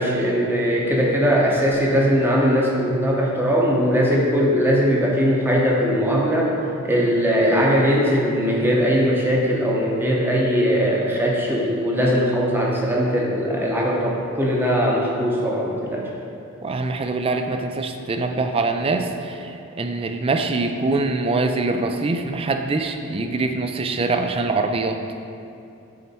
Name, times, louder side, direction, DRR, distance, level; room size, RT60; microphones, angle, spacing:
voice 1, 0.0-6.5 6.8-16.1, equal, 10° right, -3 dB, 0.8 m, -20 dB
voice 2, 16.6-25.0, right 3 dB, 25° right, 6 dB, 0.3 m, -24 dB
7.7 x 4.2 x 4.2 m, 2.6 s
head